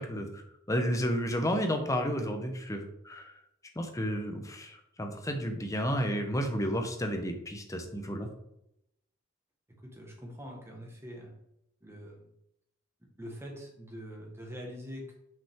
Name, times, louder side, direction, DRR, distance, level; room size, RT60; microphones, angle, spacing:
voice 1, 0.0-3.3 3.8-8.3, equal, 15° left, 5 dB, 0.8 m, -32 dB
voice 2, 9.8-11.3 11.8-12.3 13.2-15.1, equal, 10° right, 0 dB, 1.4 m, -44 dB
5.9 x 5.6 x 3.6 m, 0.80 s
head